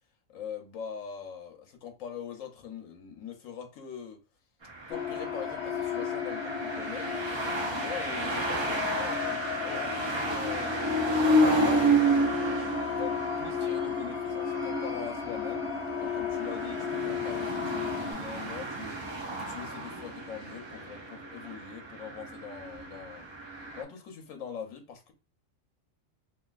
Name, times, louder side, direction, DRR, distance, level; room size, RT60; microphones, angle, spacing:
voice 1, 0.3-4.2 4.9-7.1 7.7-10.7 11.2-23.3 23.7-25.1, left 7 dB, 80° left, 4 dB, 1.1 m, -42 dB
sound 1, 4.6-23.8, right 1 dB, 45° right, 0.3 m, -31 dB
sound 2, 4.9-18.1, left 8 dB, 50° left, 1.0 m, -34 dB
3.2 x 2.3 x 2.3 m, 0.29 s
omnidirectional pair, 1.4 m